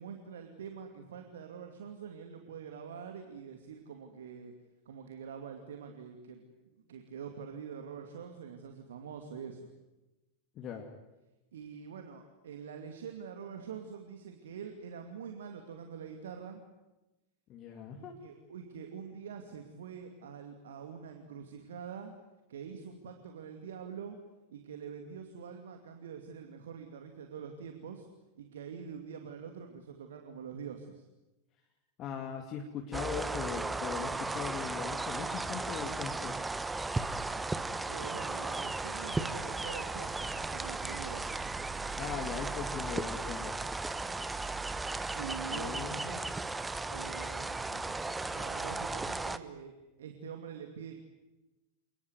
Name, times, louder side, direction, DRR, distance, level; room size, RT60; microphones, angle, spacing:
voice 1, 0.0-4.5 4.9-9.7 11.5-16.6 18.0-22.1 22.5-24.2 24.5-28.1 28.4-31.0 37.9-41.3 45.1-46.3 46.9-48.0 48.3-51.0, right 7 dB, 60° right, 5 dB, 2.5 m, -45 dB
voice 2, 10.6-10.9 17.5-18.1 32.0-36.4 42.0-43.6 45.5-46.2, left 7 dB, 35° left, 3 dB, 2.8 m, -40 dB
sound 1, 32.9-49.4, right 3 dB, 10° right, 1.2 m, -36 dB
29.0 x 20.0 x 9.6 m, 1.0 s
figure-of-eight pair, 90°, 0 cm